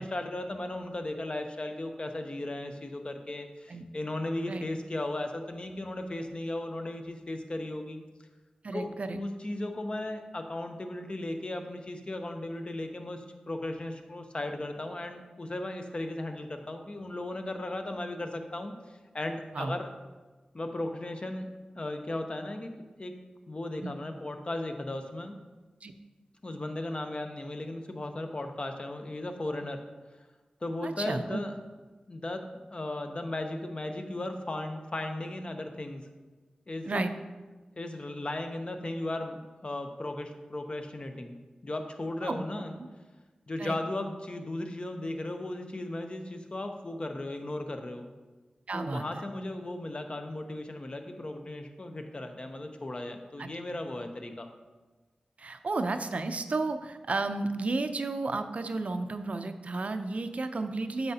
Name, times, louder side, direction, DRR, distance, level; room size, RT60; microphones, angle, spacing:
voice 1, 0.0-8.0 8.7-19.9 20.5-21.5 21.7-22.7 23.0-23.2 23.5-25.4 26.4-29.8 30.6-31.5 32.1-32.4 32.7-36.1 36.7-37.1 37.8-41.4 41.6-42.8 43.5-48.1 48.7-54.5, left 1 dB, 45° left, 5 dB, 0.7 m, -36 dB
voice 2, 8.6-9.2 19.5-19.8 23.8-23.9 25.8-25.9 30.8-31.4 36.9-37.1 42.2-42.4 43.6-43.8 48.7-49.0 53.4-53.5 55.4-61.1, right 3 dB, 60° right, 8 dB, 0.5 m, -32 dB
7.9 x 5.6 x 2.8 m, 1.2 s
cardioid pair, 45°, 3 cm